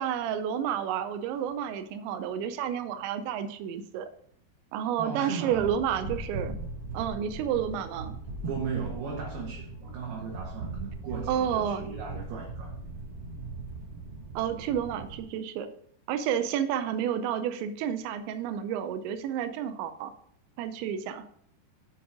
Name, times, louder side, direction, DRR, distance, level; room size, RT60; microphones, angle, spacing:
voice 1, 0.0-4.1 4.7-6.6 6.9-8.1 11.3-11.9 14.4-15.7 16.1-20.1 20.6-21.3, right 9 dB, 85° right, 9 dB, 3.0 m, -30 dB
voice 2, 5.0-5.7 8.4-12.7, right 6 dB, 65° right, -2 dB, 2.9 m, -37 dB
sound 1, 5.5-15.2, right 3 dB, 45° right, 1.6 m, -39 dB
7.1 x 7.1 x 4.8 m, 0.65 s
omnidirectional pair, 5.1 m